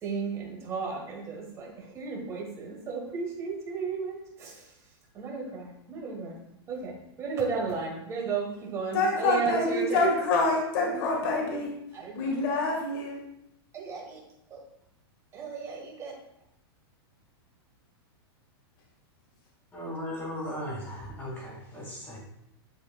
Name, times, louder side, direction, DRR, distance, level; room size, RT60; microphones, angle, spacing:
voice 1, 0.0-4.7 5.1-6.4 6.7-10.1 10.9-11.0 11.9-12.3 13.7-14.2 14.5-14.6 15.3-16.2, right 5 dB, 20° right, 0 dB, 1.5 m, -34 dB
voice 2, 8.9-11.7 12.2-13.2, left 2 dB, 55° left, -1 dB, 1.8 m, -26 dB
voice 3, 19.7-22.2, left 1 dB, 10° left, -6 dB, 2.4 m, -37 dB
10.5 x 4.7 x 2.4 m, 0.82 s
supercardioid pair, 160°, 14 cm